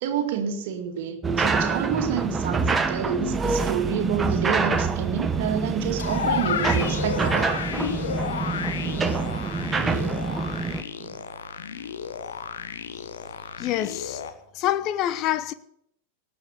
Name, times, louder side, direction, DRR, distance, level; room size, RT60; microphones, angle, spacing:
voice 1, 0.0-7.5 11.0-11.2, right 7 dB, 50° right, 2.1 m, -29 dB
sound 1, 1.2-10.8, right 4 dB, 15° right, 1.0 m, -26 dB
sound 2, 6.0-14.3, left 7 dB, 60° left, 1.3 m, -32 dB
voice 2, 13.6-14.2 14.5-15.5, left 12 dB, 35° left, 0.9 m, -26 dB
18.5 x 7.1 x 8.4 m
figure-of-eight pair, 90°, 0 cm